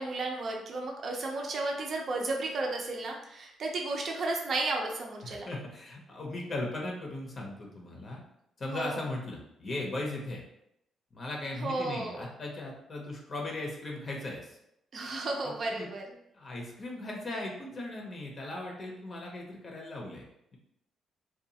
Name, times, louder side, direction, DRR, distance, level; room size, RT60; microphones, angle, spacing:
voice 1, 0.0-5.5 8.7-9.0 11.6-12.2 14.9-16.0, right 2 dB, 50° right, 0 dB, 0.5 m, -33 dB
voice 2, 5.2-8.2 8.6-10.4 11.1-14.6 15.8-15.9 16.3-20.2, left 2 dB, 40° left, -1 dB, 0.6 m, -38 dB
2.7 x 2.3 x 2.7 m, 0.79 s
cardioid pair, 90°, 0 cm